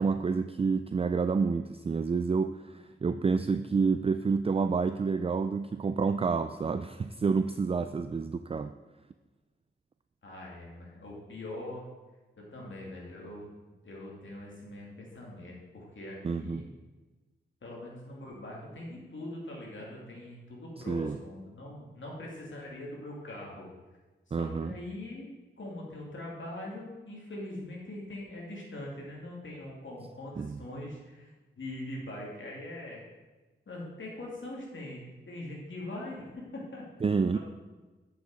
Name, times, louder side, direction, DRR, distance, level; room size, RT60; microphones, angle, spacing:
voice 1, 0.0-8.7 16.2-16.6 20.9-21.2 24.3-24.7 30.4-30.6 37.0-37.4, right 5 dB, 30° right, 10 dB, 0.3 m, -29 dB
voice 2, 10.2-11.9 12.5-13.5 13.8-16.6 17.6-23.7 24.3-25.3 25.6-31.3 31.6-33.0 33.7-36.2 36.5-36.8 37.3-37.4, left 1 dB, 65° left, -3 dB, 2.5 m, -42 dB
8.1 x 6.5 x 4.8 m, 1.2 s
wide cardioid pair, 75°, 21 cm